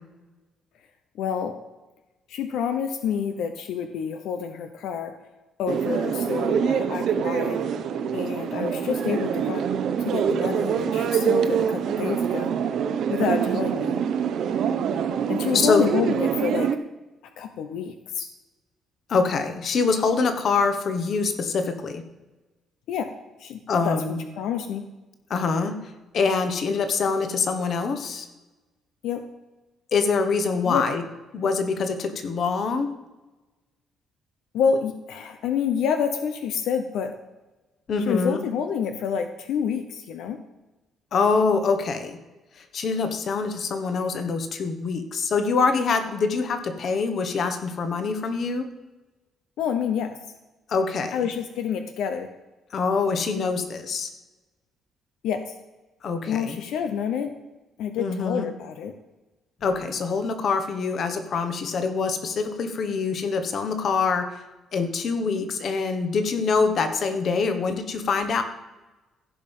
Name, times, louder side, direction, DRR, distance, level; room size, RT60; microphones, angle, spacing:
voice 1, 1.2-1.5 2.3-5.1 5.6-7.6 8.1-9.6 10.0-12.5 13.1-14.0 15.3-16.7 17.4-18.3 22.9-23.1 23.4-24.0 24.4-24.9 29.0-29.2 30.7-30.8 34.5-37.1 38.1-40.4 49.6-50.1 51.1-52.3 55.2-55.4 56.3-57.3 57.8-58.9, left 7 dB, 80° left, 7 dB, 0.9 m, -28 dB
sound 1, 5.7-16.8, right 7 dB, 60° right, 0.8 m, -25 dB
voice 2, 15.5-15.9 19.1-22.0 23.7-24.2 25.3-25.8 26.1-28.3 29.9-31.0 31.3-32.9 37.9-38.4 41.1-42.2 42.7-48.7 50.7-51.3 52.7-54.1 56.0-56.6 58.0-58.5 59.6-64.3 64.7-68.4, left 4 dB, 45° left, 8 dB, 1.3 m, -24 dB
15.5 x 5.5 x 5.5 m, 1.1 s
cardioid pair, 145°, 0 cm